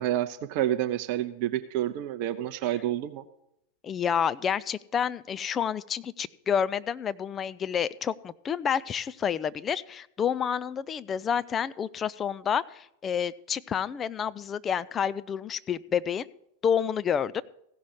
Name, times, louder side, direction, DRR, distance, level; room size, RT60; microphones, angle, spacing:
voice 1, 0.0-3.2, right 12 dB, 45° right, 9 dB, 0.6 m, -29 dB
voice 2, 3.8-16.3 16.6-17.4, left 8 dB, 25° left, 16 dB, 0.5 m, -29 dB
15.5 x 6.2 x 8.0 m, 0.77 s
figure-of-eight pair, 90°, 0 cm